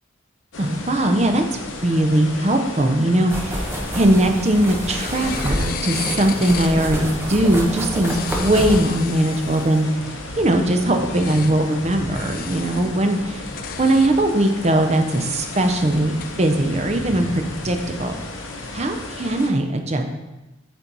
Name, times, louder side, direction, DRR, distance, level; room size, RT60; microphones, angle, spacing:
sound 1, 0.5-19.5, left 2 dB, 90° left, 1.0 m, -34 dB
voice 1, 0.6-3.6 3.9-9.9 10.4-13.4 13.8-18.1 18.7-20.0, right 1 dB, 35° right, 4 dB, 0.6 m, -20 dB
sound 2, 3.3-9.8, equal, 15° right, 0.9 m, -28 dB
sound 3, 3.5-4.5 4.9-6.9 7.9-9.9 11.0-11.6 12.1-12.9 13.3-14.1 15.1-16.6, left 8 dB, 45° left, 0.3 m, -35 dB
8.0 x 4.4 x 4.0 m, 1.0 s
head